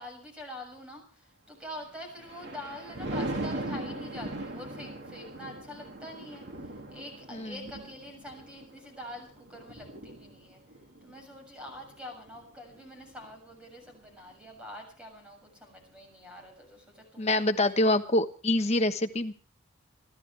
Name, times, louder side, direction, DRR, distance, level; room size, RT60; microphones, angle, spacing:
voice 1, 0.0-10.6 11.0-17.6 18.5-18.8, left 1 dB, 5° right, 2 dB, 7.0 m, -45 dB
Thunder, 1.9-13.4 13.8-14.1, right 1 dB, 55° right, 2.5 m, -40 dB
voice 2, 17.2-19.3, left 1 dB, 30° left, 6 dB, 1.2 m, -25 dB
29.5 x 12.0 x 3.4 m, 0.39 s
head